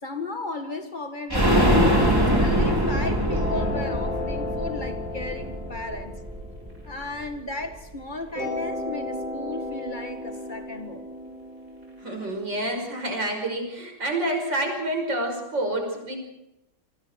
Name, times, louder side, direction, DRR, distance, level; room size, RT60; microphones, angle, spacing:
voice 1, 0.0-6.2 6.6-11.1, left 2 dB, 25° left, 2.0 m, -35 dB
sound 1, 1.3-6.9 7.2-7.3 7.6-7.7, equal, 10° right, 3.5 m, -23 dB
sound 2, 3.3-7.7 8.4-13.3, left 2 dB, 50° right, 8.6 m, -35 dB
voice 2, 12.0-16.2, right 1 dB, 85° right, 6.4 m, -28 dB
27.5 x 25.0 x 4.7 m
omnidirectional pair, 1.9 m